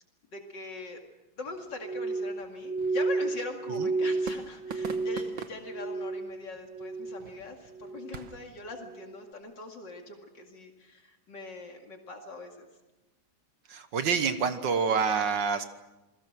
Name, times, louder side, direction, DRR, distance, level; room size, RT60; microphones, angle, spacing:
voice 1, 0.3-1.0 1.4-12.7, left 3 dB, 65° left, 3 dB, 2.9 m, -42 dB
sound 1, 1.4-8.5, right 6 dB, 85° right, 2.1 m, -46 dB
Glass, 1.8-6.4 6.7-7.3 7.7-8.3 8.8-9.1, right 3 dB, 45° right, 1.0 m, -32 dB
voice 2, 13.7-15.6, right 6 dB, 70° right, 9 dB, 1.9 m, -27 dB
29.0 x 21.0 x 6.2 m, 1.0 s
omnidirectional pair, 2.1 m